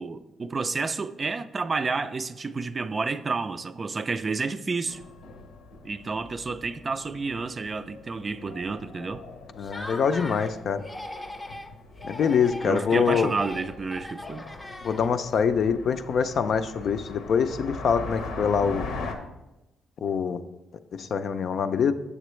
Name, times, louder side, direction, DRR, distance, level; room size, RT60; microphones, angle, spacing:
voice 1, 0.0-5.0 5.8-9.2 12.7-14.5, right 4 dB, 35° right, 0.3 m, -30 dB
sound 1, 4.9-19.1, left 3 dB, 85° left, 0.8 m, -41 dB
voice 2, 9.6-10.8 12.1-13.4 14.8-18.9 20.0-20.4 21.0-21.9, left 6 dB, 60° left, 0.4 m, -24 dB
Laughter, 9.6-10.5 10.8-11.7 12.0-15.3, left 1 dB, 15° left, 0.6 m, -40 dB
7.2 x 6.8 x 3.1 m
cardioid pair, 90°, 0 cm